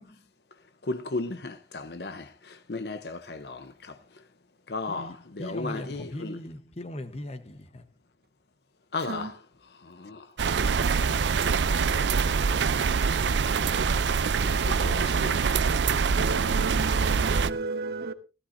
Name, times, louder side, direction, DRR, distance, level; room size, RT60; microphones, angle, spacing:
voice 1, 0.9-2.2 2.7-3.6 4.7-5.1 5.4-6.4 8.9-9.3 10.1-10.2 11.8-12.0 14.7-15.6, left 3 dB, 65° left, 0.8 m, -34 dB
voice 2, 4.9-7.8, left 1 dB, 35° left, 1.1 m, -39 dB
sound 1, 10.4-17.5, right 5 dB, 80° right, 0.5 m, -24 dB
voice 3, 13.5-14.0 15.1-15.4 16.2-18.1, right 3 dB, 60° right, 1.2 m, -34 dB
16.0 x 14.0 x 2.7 m
head